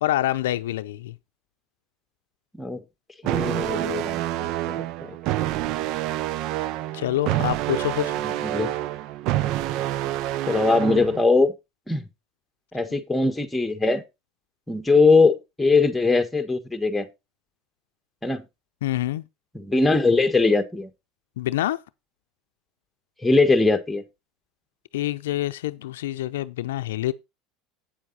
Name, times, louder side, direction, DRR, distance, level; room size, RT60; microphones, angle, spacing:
voice 1, 0.0-1.1 6.9-8.2 18.8-19.2 21.4-21.8 24.9-27.1, left 14 dB, 85° left, 0.5 m, -26 dB
voice 2, 3.2-5.2 7.3-7.5 8.2-8.7 10.5-11.5 11.9-12.1 12.7-14.0 14.7-17.1 18.2-18.4 19.5-20.9 23.2-24.0, left 3 dB, 5° left, 1.6 m, -21 dB
sound 1, 3.2-11.2, right 14 dB, 60° right, 0.5 m, -27 dB
8.8 x 7.2 x 4.2 m
supercardioid pair, 100°, 0 cm